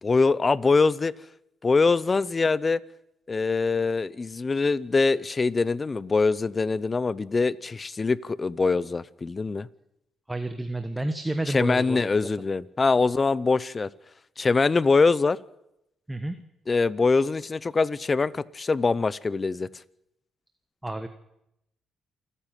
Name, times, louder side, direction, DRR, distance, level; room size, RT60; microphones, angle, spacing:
voice 1, 0.0-1.1 1.6-2.8 3.3-9.7 11.5-13.9 14.4-15.4 16.7-19.7, left 4 dB, 30° left, 0.7 m, -23 dB
voice 2, 10.3-12.3 16.1-16.4 20.8-21.1, right 1 dB, 10° right, 1.3 m, -30 dB
28.5 x 10.0 x 9.2 m
cardioid pair, 90°, 0 cm